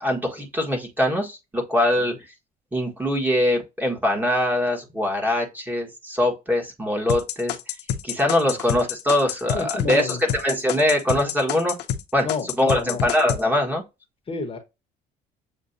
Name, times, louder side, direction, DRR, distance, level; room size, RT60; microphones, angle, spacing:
voice 1, 0.0-2.2 2.7-7.7 8.0-11.8 12.1-12.3 12.6-13.8, left 1 dB, 10° right, 1.5 m, -23 dB
sound 1, 7.1-12.0 12.3-13.4, left 10 dB, 85° left, 0.6 m, -27 dB
voice 2, 9.5-10.2 12.2-13.0 14.3-14.6, left 4 dB, 35° left, 1.1 m, -30 dB
7.3 x 2.5 x 2.6 m
cardioid pair, 110°, 17 cm